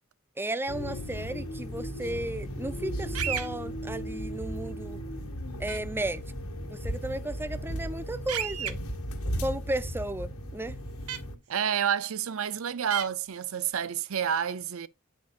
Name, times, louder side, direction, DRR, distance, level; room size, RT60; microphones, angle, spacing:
voice 1, 0.4-5.0 5.6-6.2 6.7-8.8 9.4-10.8, right 1 dB, 10° right, 0.5 m, -34 dB
sound 1, 0.7-11.3, equal, 75° left, 1.8 m, -36 dB
sound 2, 3.1-3.5 5.7-5.8 8.3-8.7 11.1-11.2 12.9-13.1, right 9 dB, 90° right, 1.0 m, -31 dB
voice 2, 11.5-14.9, right 8 dB, 70° right, 0.6 m, -29 dB
8.5 x 8.1 x 2.5 m
head